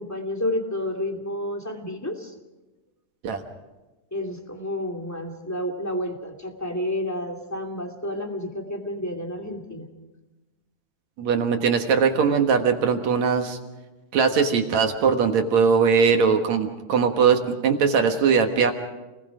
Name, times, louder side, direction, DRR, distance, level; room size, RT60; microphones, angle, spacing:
voice 1, 0.0-2.3 4.1-9.9, left 1 dB, 5° left, 2 dB, 2.0 m, -30 dB
voice 2, 11.2-13.6 14.1-18.7, right 6 dB, 65° right, 5 dB, 2.6 m, -20 dB
30.0 x 20.0 x 5.0 m, 1.1 s
omnidirectional pair, 3.6 m